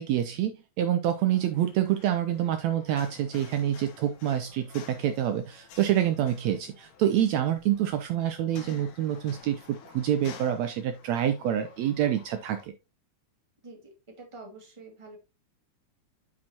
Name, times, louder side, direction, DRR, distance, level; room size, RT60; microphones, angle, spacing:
voice 1, 0.0-12.7, right 11 dB, 75° right, 8 dB, 1.7 m, -27 dB
sound 1, 1.2-12.7, left 7 dB, 85° left, 2.6 m, -51 dB
voice 2, 13.6-15.2, right 3 dB, 10° right, 0 dB, 1.8 m, -47 dB
8.7 x 6.0 x 2.9 m, 0.27 s
omnidirectional pair, 3.5 m